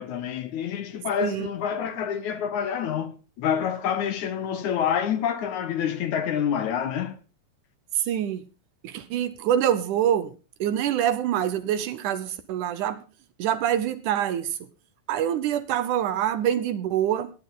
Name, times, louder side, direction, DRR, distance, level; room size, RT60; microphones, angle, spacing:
voice 1, 0.0-7.2, left 8 dB, 65° left, 2.4 m, -27 dB
voice 2, 8.0-8.4 8.8-10.3 10.6-13.0 13.4-14.6 15.1-17.3, right 10 dB, 70° right, 2.2 m, -25 dB
18.0 x 10.5 x 4.0 m
omnidirectional pair, 4.0 m